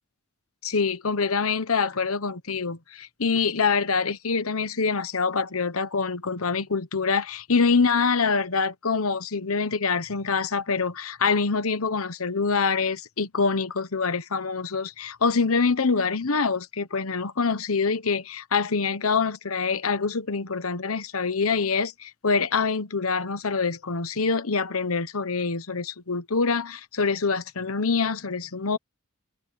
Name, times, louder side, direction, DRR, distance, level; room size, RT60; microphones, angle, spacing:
voice 1, 0.6-28.8, left 4 dB, 85° left, 1.2 m, -25 dB
head